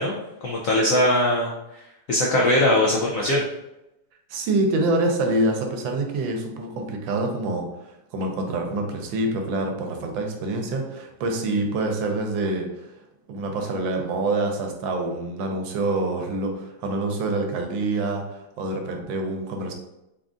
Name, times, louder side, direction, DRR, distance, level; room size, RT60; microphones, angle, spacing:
voice 1, 0.0-1.8 2.1-3.4, left 1 dB, 85° left, -3 dB, 0.7 m, -21 dB
voice 2, 4.3-12.9 13.3-19.7, right 2 dB, 80° right, 3 dB, 1.4 m, -26 dB
3.9 x 2.4 x 3.6 m, 0.89 s
omnidirectional pair, 2.1 m